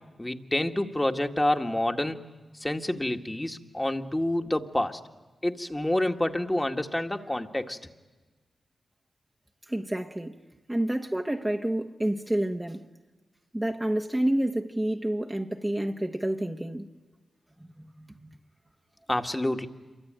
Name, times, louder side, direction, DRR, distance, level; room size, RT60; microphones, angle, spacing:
voice 1, 0.2-2.2 2.6-5.0 5.4-7.8 19.1-19.7, left 1 dB, 15° left, 1.9 m, -28 dB
voice 2, 9.7-10.3 10.7-12.8 13.5-16.9 17.8-18.3, right 1 dB, 15° right, 1.4 m, -29 dB
27.5 x 24.0 x 9.0 m
cardioid pair, 45°, 0 cm